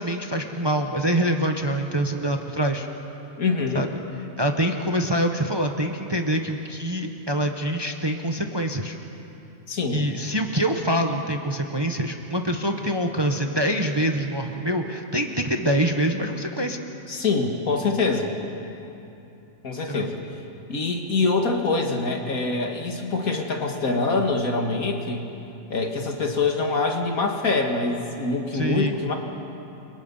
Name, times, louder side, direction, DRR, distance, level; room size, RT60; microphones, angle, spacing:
voice 1, 0.0-2.9 3.7-3.9 4.4-9.0 9.9-16.8 19.9-20.1 28.5-29.0, right 1 dB, 20° right, 4 dB, 1.1 m, -25 dB
voice 2, 3.4-3.8 9.7-10.0 17.1-18.3 19.6-20.2 20.7-25.3 25.7-29.1, left 3 dB, 65° left, 2 dB, 2.5 m, -24 dB
29.0 x 24.5 x 5.6 m, 2.9 s
omnidirectional pair, 1.6 m